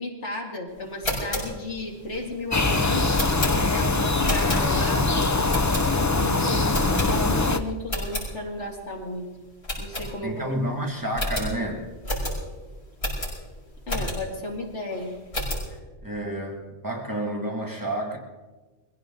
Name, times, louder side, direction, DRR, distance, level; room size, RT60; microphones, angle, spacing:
voice 1, 0.0-3.2 3.7-5.2 6.2-6.7 7.0-9.3 9.8-10.5 13.9-15.2, left 2 dB, 80° left, 0 dB, 2.8 m, -33 dB
sound 1, 0.8-5.0 5.5-6.2 6.7-7.5 7.8-8.3 8.7-8.8 9.1-9.2 9.6-10.5 10.8-10.9 11.1-14.4 14.9-15.7, equal, 60° left, 6.2 m, -31 dB
sound 2, 2.5-7.6, left 3 dB, 25° left, 0.4 m, -22 dB
voice 2, 10.2-11.9 16.0-18.2, right 1 dB, 15° right, 0 dB, 2.0 m, -30 dB
22.5 x 16.0 x 3.9 m, 1.2 s
omnidirectional pair, 1.2 m